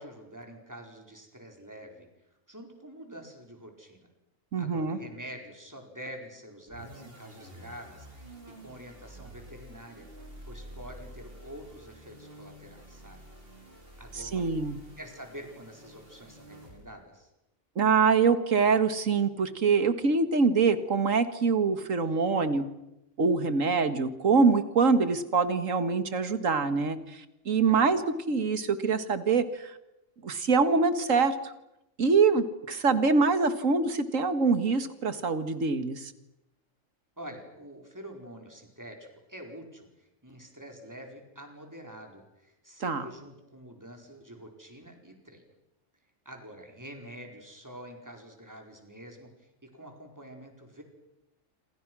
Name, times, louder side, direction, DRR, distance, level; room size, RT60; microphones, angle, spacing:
voice 1, 0.0-2.1 2.5-4.1 4.6-8.3 8.6-10.1 10.5-13.2 14.0-14.5 15.0-17.3 27.7-27.8 37.2-45.5 46.2-50.8, equal, 15° right, 3 dB, 4.6 m, -46 dB
voice 2, 4.5-5.0 14.3-14.8 17.8-22.6 23.2-27.2 27.5-28.0 28.3-29.7 30.2-31.5 32.0-36.1 42.8-43.1, right 4 dB, 80° right, 11 dB, 2.1 m, -24 dB
sound 1, 6.7-17.1, right 1 dB, 45° right, 4.7 m, -49 dB
28.0 x 27.0 x 6.2 m, 0.90 s
omnidirectional pair, 1.3 m